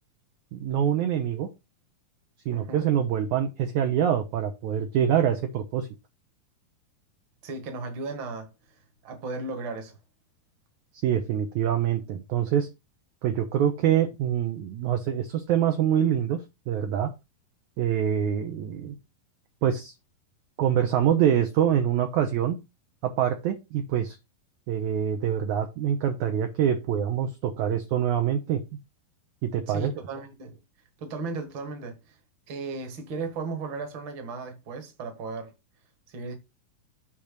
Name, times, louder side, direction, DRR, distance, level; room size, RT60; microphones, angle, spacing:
voice 1, 0.5-1.5 2.5-5.9 11.0-12.7 13.2-16.4 16.7-17.1 17.8-19.0 19.6-19.9 20.6-22.6 23.0-24.2 24.7-28.6 29.4-29.9, right 9 dB, 70° right, 1.9 m, -25 dB
voice 2, 2.5-2.8 7.4-8.5 9.0-10.0 29.7-30.6 31.0-32.2 32.5-35.5 36.1-36.4, right 3 dB, 45° right, 1.8 m, -35 dB
8.7 x 3.0 x 6.4 m
omnidirectional pair, 4.1 m